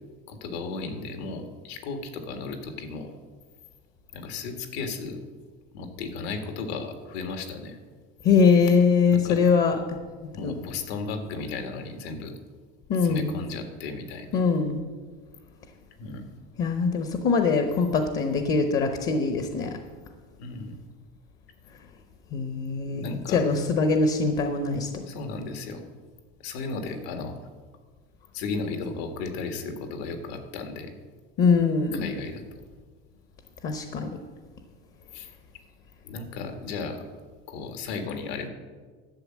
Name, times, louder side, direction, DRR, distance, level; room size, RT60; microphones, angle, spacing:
voice 1, 0.3-3.2 4.1-5.2 5.7-7.8 9.1-9.4 10.3-12.3 13.0-14.4 16.0-16.2 20.4-20.8 22.8-23.4 25.1-25.8 26.4-27.4 28.3-30.9 31.9-32.6 35.1-35.3 36.0-37.0 37.5-38.5, left 4 dB, 75° left, 6 dB, 1.9 m, -35 dB
voice 2, 8.2-9.8 10.4-10.6 12.9-13.4 14.3-14.8 16.6-19.8 22.3-25.0 31.4-32.1 33.6-34.2, left 5 dB, 30° left, 7 dB, 0.8 m, -23 dB
11.5 x 7.7 x 7.4 m, 1.4 s
cardioid pair, 170°, 31 cm